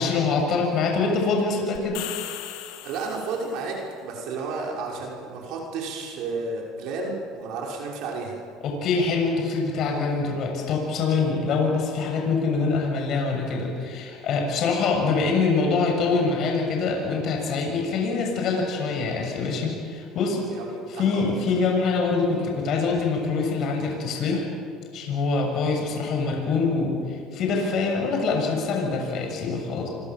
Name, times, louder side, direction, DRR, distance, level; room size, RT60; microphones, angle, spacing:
voice 1, 0.0-2.0 8.6-20.4 20.9-24.5 24.9-29.9, left 4 dB, 55° left, 1 dB, 7.0 m, -24 dB
sound 1, 1.8-3.7, left 13 dB, 80° left, 2.0 m, -37 dB
voice 2, 2.8-8.4 20.4-21.3, right 3 dB, 70° right, -1 dB, 5.8 m, -32 dB
27.0 x 24.5 x 7.6 m, 2.2 s
supercardioid pair, 110°, 0 cm